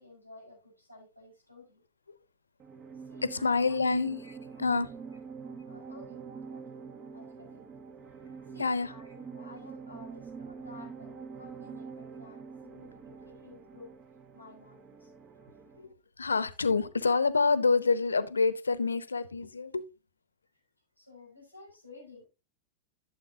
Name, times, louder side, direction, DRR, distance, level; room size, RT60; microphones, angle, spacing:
voice 1, 0.0-1.8 2.9-3.8 4.2-4.3 5.1-5.2 5.7-6.2 6.5-6.7 7.1-7.8 8.4-14.0 14.3-15.1 20.5-20.7 21.0-22.3, left 2 dB, 90° right, 4.8 m, -53 dB
sound 1, 2.6-15.9, right 5 dB, 30° right, 1.0 m, -46 dB
voice 2, 3.2-4.2 4.6-4.9 8.6-8.9 15.8-19.9, left 4 dB, 75° left, 0.7 m, -27 dB
12.5 x 7.1 x 2.7 m
figure-of-eight pair, 90°, 0 cm